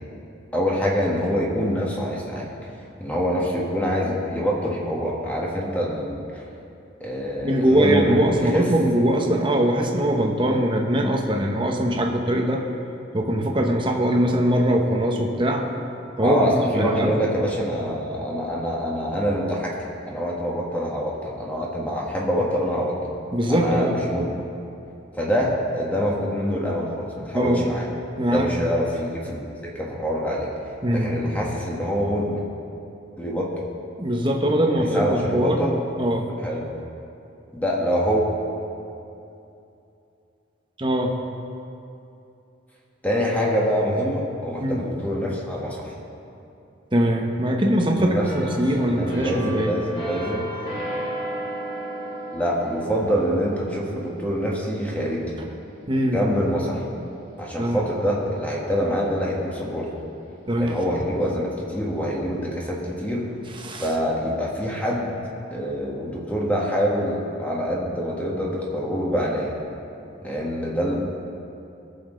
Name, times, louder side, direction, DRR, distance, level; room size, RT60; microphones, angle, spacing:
voice 1, 0.5-2.5 3.0-6.4 7.0-8.7 16.2-19.8 20.1-22.9 23.5-24.4 25.2-27.8 28.3-30.5 30.9-32.4 33.2-33.5 34.8-35.8 36.4-36.7 37.5-38.3 43.0-45.9 48.0-48.3 48.8-50.6 52.3-55.3 56.0-56.8 57.4-59.9 60.6-63.3 63.8-65.1 65.5-69.5 70.2-70.9, equal, 10° left, -4 dB, 1.5 m, -25 dB
voice 2, 7.4-12.6 13.1-15.7 16.2-17.1 23.3-23.9 27.3-27.6 28.2-28.5 30.8-31.1 34.0-35.7 36.0-36.3 40.8-41.1 44.6-44.8 46.9-49.7 55.9-56.2 57.6-57.8 60.5-60.8 63.6-63.9, right 1 dB, 25° right, 1 dB, 1.0 m, -21 dB
sound 1, 48.2-59.8 60.2-60.4, right 1 dB, 30° left, 2.9 m, -36 dB
19.5 x 7.0 x 3.9 m, 2.8 s
head